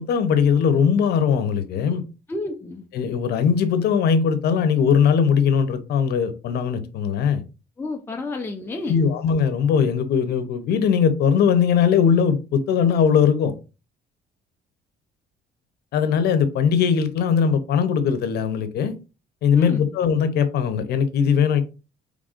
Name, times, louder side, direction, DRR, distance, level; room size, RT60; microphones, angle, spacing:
voice 1, 0.0-2.0 2.9-7.4 8.9-13.5 15.9-19.0 19.4-21.6, left 7 dB, 70° left, 0.8 m, -20 dB
voice 2, 2.3-2.9 7.8-9.1 19.5-19.9, left 2 dB, 15° left, 0.6 m, -30 dB
5.0 x 3.4 x 2.5 m
cardioid pair, 110°, 17 cm